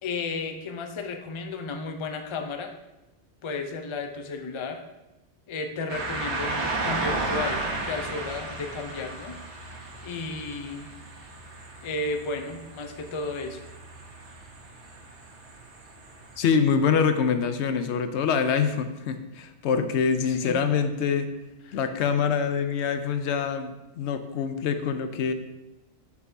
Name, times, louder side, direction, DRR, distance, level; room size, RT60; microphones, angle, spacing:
voice 1, 0.0-2.7 3.4-4.8 5.5-9.8 10.0-10.9 11.8-13.6 20.3-20.6 21.7-21.8, left 3 dB, 40° left, 5 dB, 0.4 m, -33 dB
sound 1, 5.9-16.4, right 2 dB, 85° right, 1.2 m, -34 dB
voice 2, 16.4-21.3 21.7-25.3, left 6 dB, 80° left, 8 dB, 0.9 m, -25 dB
7.1 x 6.4 x 2.7 m, 0.98 s
omnidirectional pair, 1.1 m